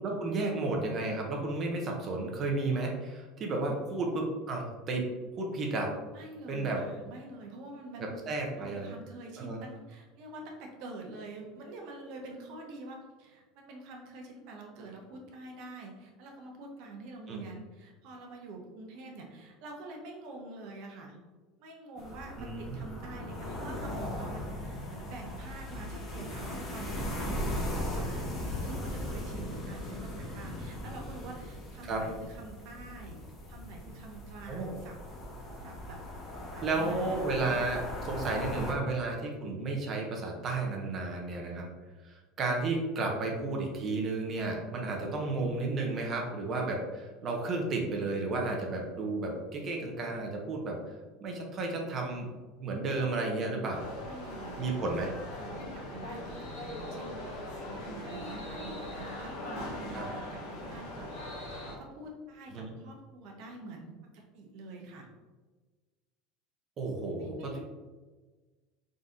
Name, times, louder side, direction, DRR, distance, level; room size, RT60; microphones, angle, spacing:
voice 1, 0.0-5.1 5.4-5.9 6.5-6.8 8.0-8.9 9.4-9.6 17.3-17.4 22.4-22.8 31.9-32.0 34.5-34.7 36.6-41.7 42.0-50.9 51.2-52.3 52.6-53.8 54.6-55.1 59.9-60.1 62.5-62.7 66.8-67.6, right 3 dB, 35° right, 1 dB, 0.8 m, -32 dB
voice 2, 6.1-8.2 8.6-21.2 21.6-33.2 33.5-35.0 35.6-36.0 36.3-37.7 54.0-65.1 67.2-67.6, right 2 dB, 65° right, 1 dB, 0.9 m, -46 dB
sound 1, 22.0-38.7, left 1 dB, 25° left, 1.1 m, -38 dB
sound 2, 53.7-61.8, left 1 dB, 75° left, 1.1 m, -40 dB
3.8 x 2.7 x 3.7 m, 1.3 s
supercardioid pair, 130°, 0 cm